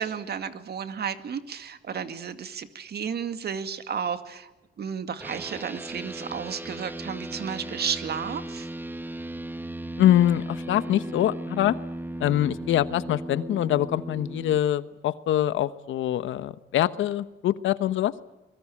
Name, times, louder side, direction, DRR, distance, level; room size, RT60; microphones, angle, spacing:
voice 1, 0.0-4.5 4.8-8.7, right 7 dB, 55° right, 10 dB, 2.2 m, -32 dB
sound 1, 5.2-14.6, right 1 dB, 10° right, 1.3 m, -36 dB
voice 2, 10.0-11.8 12.2-18.1, left 12 dB, 80° left, 14 dB, 1.1 m, -24 dB
24.5 x 21.5 x 8.6 m, 1.0 s
cardioid pair, 90°, 20 cm